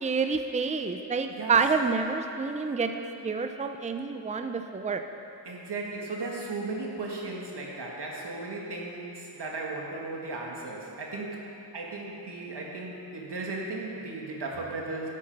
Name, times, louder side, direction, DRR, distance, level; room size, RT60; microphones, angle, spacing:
voice 1, 0.0-5.0, right 5 dB, 20° right, 6 dB, 0.5 m, -28 dB
voice 2, 5.4-11.5 11.7-15.1, right 3 dB, 75° right, -2 dB, 1.8 m, -36 dB
11.5 x 8.4 x 5.4 m, 2.8 s
wide cardioid pair, 100°, 41 cm